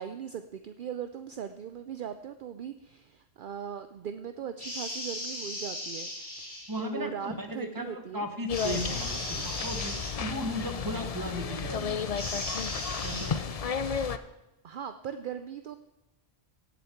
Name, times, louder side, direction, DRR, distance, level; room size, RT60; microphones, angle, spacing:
voice 1, 0.0-8.3 14.6-15.8, right 8 dB, 60° right, 9 dB, 0.7 m, -39 dB
sound 1, 4.6-6.8 8.5-10.1 12.1-13.3, left 1 dB, 60° left, 3.8 m, -37 dB
voice 2, 6.7-12.0 13.0-13.5, equal, 20° right, 6 dB, 1.2 m, -36 dB
sound 2, 8.5-14.2, left 6 dB, 45° left, 0.6 m, -33 dB
17.0 x 7.1 x 4.5 m, 0.99 s
omnidirectional pair, 1.1 m